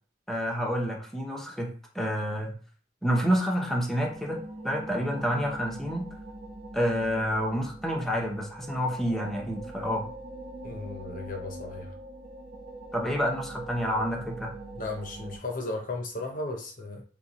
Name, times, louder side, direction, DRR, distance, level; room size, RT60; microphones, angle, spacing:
voice 1, 0.3-2.6 3.0-6.1 6.7-10.1 12.9-14.5, equal, ahead, 0 dB, 0.7 m, -29 dB
sound 1, 4.0-15.4, right 2 dB, 35° right, 0.9 m, -43 dB
voice 2, 10.6-11.9 14.7-17.0, left 2 dB, 45° left, 3 dB, 0.7 m, -35 dB
6.6 x 2.3 x 3.0 m, 0.42 s
head